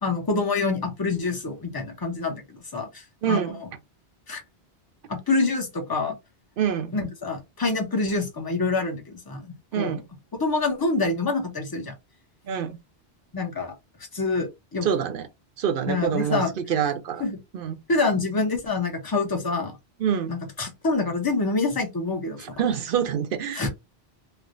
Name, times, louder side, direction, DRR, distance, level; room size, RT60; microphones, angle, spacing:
voice 1, 0.0-3.5 4.3-4.4 5.1-6.2 6.9-9.9 10.4-11.9 13.3-13.7 14.1-14.9 15.9-16.5 17.2-17.4 17.9-19.8 20.3-22.4 23.5-23.7, left 3 dB, 25° left, 0.7 m, -26 dB
voice 2, 3.2-3.6 6.6-6.9 9.7-10.0 12.4-12.8 14.8-15.3 15.6-17.2 17.5-17.8 20.0-20.3 22.4-23.7, right 8 dB, 65° right, 0.7 m, -26 dB
3.2 x 2.1 x 2.5 m
omnidirectional pair, 1.1 m